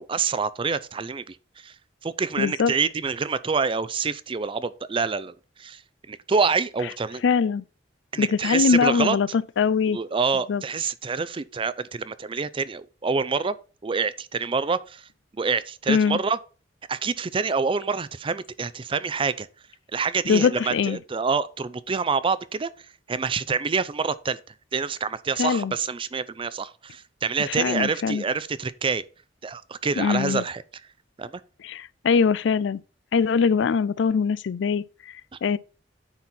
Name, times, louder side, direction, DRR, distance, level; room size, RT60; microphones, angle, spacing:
voice 1, 0.0-1.7 2.0-5.8 6.1-7.2 8.1-9.2 9.9-13.6 13.8-15.1 15.3-16.4 16.9-19.5 19.9-22.7 23.1-24.4 24.7-29.0 29.4-30.6 31.2-31.4, right 5 dB, 30° right, 0.4 m, -27 dB
voice 2, 2.4-2.7 7.2-7.6 8.2-10.0 10.5-10.6 15.9-16.2 20.3-21.0 25.4-25.7 27.5-28.2 30.0-30.4 31.6-32.8 33.1-35.1 35.4-35.6, left 6 dB, 75° left, 0.4 m, -22 dB
9.7 x 4.2 x 4.3 m
head